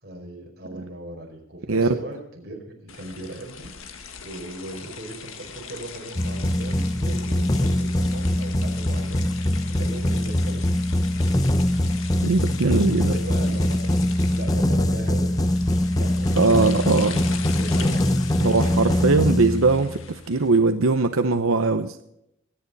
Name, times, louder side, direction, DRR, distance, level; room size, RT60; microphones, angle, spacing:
voice 1, 0.0-10.6 12.4-15.6 15.9-19.5, right 2 dB, 50° right, 0 dB, 4.8 m, -39 dB
sound 1, 2.9-20.6, left 6 dB, 80° left, 1.6 m, -40 dB
sound 2, 6.2-20.1, left 1 dB, 15° left, 0.6 m, -23 dB
voice 2, 12.2-13.1 16.4-17.1 18.4-22.0, right 3 dB, 85° right, 8 dB, 0.8 m, -20 dB
24.5 x 9.5 x 4.1 m, 0.77 s
head